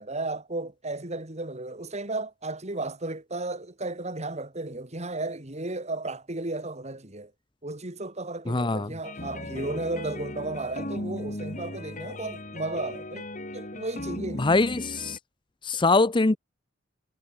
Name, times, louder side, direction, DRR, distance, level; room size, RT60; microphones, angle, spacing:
voice 1, 0.0-7.3 7.6-14.5, right 2 dB, 35° right, 2.9 m, -34 dB
voice 2, 8.5-8.9 14.4-15.2 15.7-16.4, left 3 dB, 25° left, 0.7 m, -23 dB
sound 1, 9.0-15.2, left 1 dB, 40° left, 4.9 m, -37 dB
head